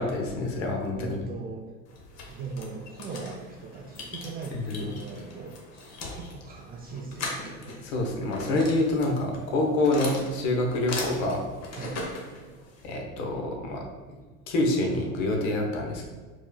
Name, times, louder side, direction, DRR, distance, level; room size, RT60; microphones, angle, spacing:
voice 1, 0.0-1.2 4.5-4.8 7.8-11.4 12.8-13.8 14.5-16.1, left 2 dB, 65° left, 1 dB, 0.9 m, -27 dB
voice 2, 0.9-1.7 2.3-5.6 6.1-7.7 11.7-12.5, right 4 dB, 25° right, 0 dB, 0.3 m, -39 dB
sound 1, 1.9-12.9, left 2 dB, 35° left, 0.9 m, -39 dB
4.6 x 2.9 x 2.2 m, 1.4 s
hypercardioid pair, 80°, 43 cm